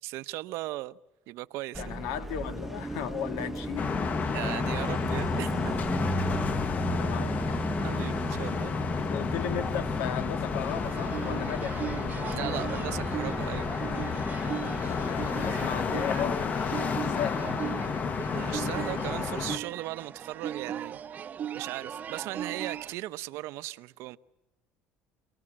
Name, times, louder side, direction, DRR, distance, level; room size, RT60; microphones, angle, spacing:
voice 1, 0.0-1.0 1.3-2.0 4.3-5.8 7.8-8.7 12.3-13.7 18.3-21.0 21.5-24.2, right 17 dB, 70° right, 0.8 m, -37 dB
Car passing by, 1.7-16.7, right 1 dB, 5° right, 0.9 m, -36 dB
voice 2, 1.8-3.9 6.7-7.3 9.0-11.8 14.7-17.5, left 9 dB, 85° left, 2.1 m, -36 dB
sound 1, 3.8-19.6, left 6 dB, 35° left, 1.2 m, -31 dB
sound 2, 10.7-22.9, right 9 dB, 35° right, 0.8 m, -38 dB
27.5 x 19.0 x 8.9 m
cardioid pair, 130°, 5 cm